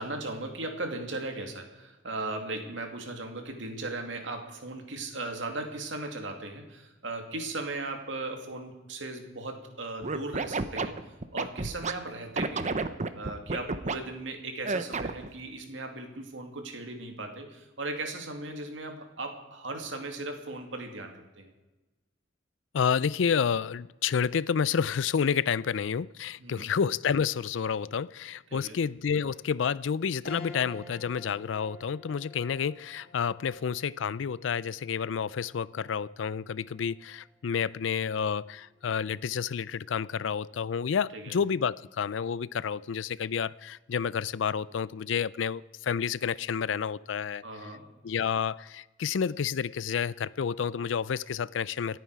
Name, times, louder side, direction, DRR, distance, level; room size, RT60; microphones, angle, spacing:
voice 1, 0.0-11.0 11.3-12.8 13.2-21.5 26.4-26.7 28.5-28.8 41.1-41.4 47.4-47.9, right 2 dB, 70° right, 4 dB, 2.4 m, -37 dB
Scratching (performance technique), 10.0-11.9 12.4-14.0 14.6-15.3, right 3 dB, 40° right, 0.8 m, -30 dB
voice 2, 22.7-47.4 48.0-52.0, left 7 dB, 70° left, 20 dB, 0.4 m, -30 dB
sound 1, 30.3-39.9 40.3-40.4 41.8-42.2, left 3 dB, 55° left, 2.0 m, -51 dB
27.0 x 9.3 x 4.8 m, 1.1 s
head